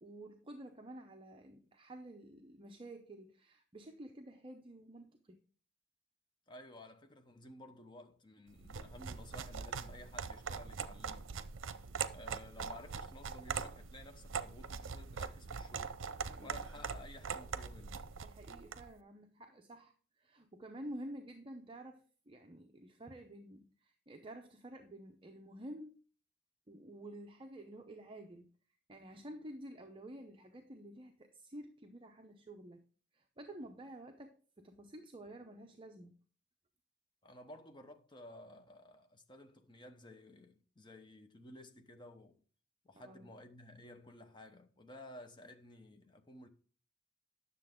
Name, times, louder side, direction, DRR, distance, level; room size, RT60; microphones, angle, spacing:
voice 1, 0.0-5.4 16.3-16.9 18.2-26.0 26.7-28.5 28.9-32.8 33.1-36.1 42.9-43.3, right 1 dB, 25° right, 0.7 m, -51 dB
voice 2, 6.5-11.3 12.1-15.9 16.4-18.1 37.2-42.3 42.8-46.5, left 1 dB, 25° left, 0.9 m, -54 dB
sound 1, 8.6-18.9, right 6 dB, 80° right, 0.6 m, -42 dB
10.0 x 6.8 x 3.6 m
head